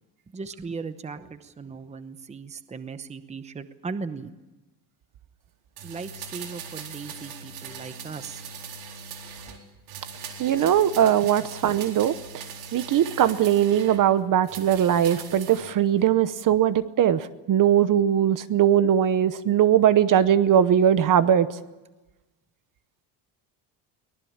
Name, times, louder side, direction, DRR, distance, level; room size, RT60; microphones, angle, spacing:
voice 1, 0.3-4.3 5.8-8.4 11.2-11.3, right 4 dB, 15° right, 11 dB, 0.9 m, -37 dB
sound 1, 5.8-9.6 9.9-14.0 14.4-15.7 16.0-16.1, right 6 dB, 90° right, 4.2 m, -40 dB
voice 2, 10.4-12.4 12.7-21.5, right 10 dB, 45° right, 13 dB, 1.0 m, -20 dB
23.5 x 19.5 x 8.8 m, 1.1 s
cardioid pair, 160°, 46 cm